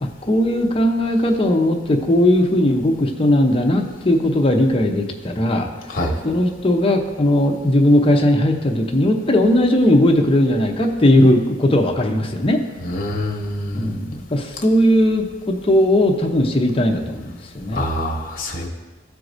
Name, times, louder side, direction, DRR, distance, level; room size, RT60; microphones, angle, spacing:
voice 1, 0.0-5.7 6.2-12.6 13.7-17.8, left 1 dB, 30° left, 3 dB, 0.7 m, -18 dB
voice 2, 12.8-13.9 17.7-18.7, left 1 dB, 50° left, 0 dB, 1.3 m, -25 dB
13.5 x 4.6 x 2.6 m, 1.2 s
head